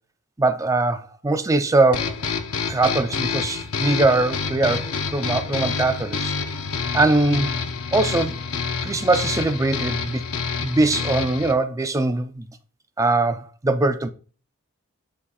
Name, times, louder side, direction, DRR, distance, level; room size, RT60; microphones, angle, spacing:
voice 1, 0.4-2.1 2.7-6.3 6.9-7.6 7.9-8.4 8.8-10.2 10.6-12.5 13.0-14.1, right 2 dB, 15° right, 0.4 m, -21 dB
sound 1, 1.9-11.5, left 5 dB, 70° left, 0.7 m, -28 dB
9.9 x 4.1 x 2.3 m
head